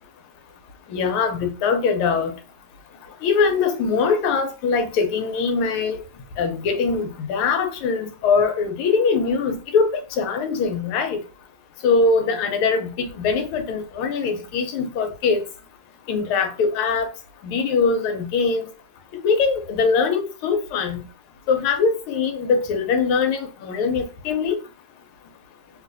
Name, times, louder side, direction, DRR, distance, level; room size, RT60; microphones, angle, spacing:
voice 1, 0.9-2.3 3.2-6.0 6.4-11.2 11.8-15.4 16.1-17.1 17.4-18.7 19.2-21.0 21.5-24.6, left 5 dB, 80° left, 1.5 m, -22 dB
3.2 x 3.1 x 2.5 m
omnidirectional pair, 2.3 m